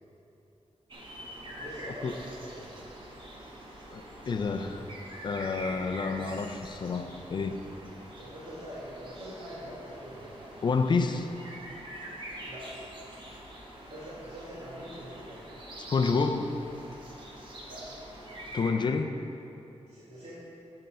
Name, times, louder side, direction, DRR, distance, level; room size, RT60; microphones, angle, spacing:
sound 1, 0.9-18.7, right 1 dB, 45° right, 1.0 m, -45 dB
voice 1, 1.6-2.7 8.2-10.3 12.5-12.6 13.9-15.5 17.6-18.0 19.9-20.3, equal, 70° right, -10 dB, 1.7 m, -44 dB
voice 2, 3.9-4.8 5.2-7.6 10.6-11.3 15.9-16.5 18.5-19.2, left 4 dB, 45° left, 6 dB, 0.4 m, -29 dB
7.6 x 6.7 x 4.4 m, 2.9 s
wide cardioid pair, 175°, 11 cm